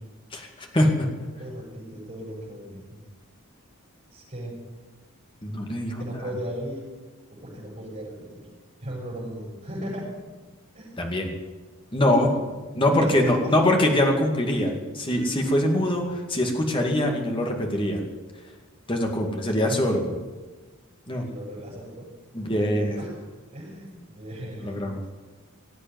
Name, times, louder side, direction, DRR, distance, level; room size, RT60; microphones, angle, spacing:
voice 1, 0.3-1.1 5.4-6.1 11.0-11.3 11.9-12.3 12.7-18.0 18.9-20.2 21.1-21.2 22.3-23.0 24.6-25.0, left 1 dB, 25° left, 2 dB, 2.2 m, -23 dB
voice 2, 1.0-3.0 4.1-4.6 6.0-6.8 7.3-8.5 8.8-10.1 10.7-11.0 12.0-12.6 12.9-13.6 15.9-16.1 19.3-19.6 21.1-22.1 22.5-23.2 23.5-24.9, equal, 35° right, -9 dB, 6.9 m, -36 dB
18.5 x 8.2 x 9.3 m, 1.3 s
head